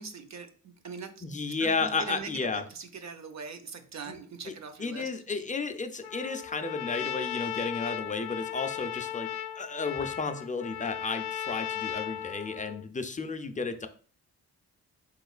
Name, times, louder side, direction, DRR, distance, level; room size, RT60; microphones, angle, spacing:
voice 1, 0.0-1.2 1.6-5.1, right 5 dB, 45° right, 8 dB, 0.6 m, -42 dB
voice 2, 1.2-2.6 4.8-9.3 9.6-13.9, left 4 dB, 20° left, 8 dB, 0.4 m, -32 dB
Trumpet, 6.0-12.8, left 10 dB, 75° left, 0.5 m, -36 dB
3.5 x 3.1 x 2.4 m, 0.42 s
cardioid pair, 65°, 40 cm